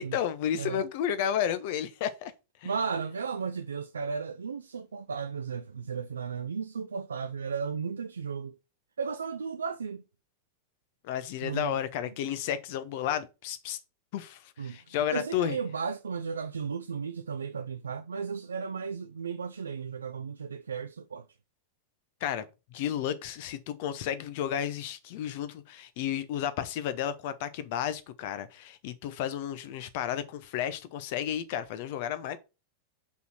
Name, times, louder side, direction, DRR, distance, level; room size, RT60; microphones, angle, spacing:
voice 1, 0.0-2.3 2.6-2.7 11.0-13.8 14.1-15.6 22.2-32.4, left 10 dB, 50° left, 0.9 m, -32 dB
voice 2, 2.6-8.6 9.0-10.0 11.4-11.8 14.6-21.3, right 6 dB, 70° right, 0.4 m, -35 dB
5.6 x 4.6 x 5.7 m
figure-of-eight pair, 90°, 0 cm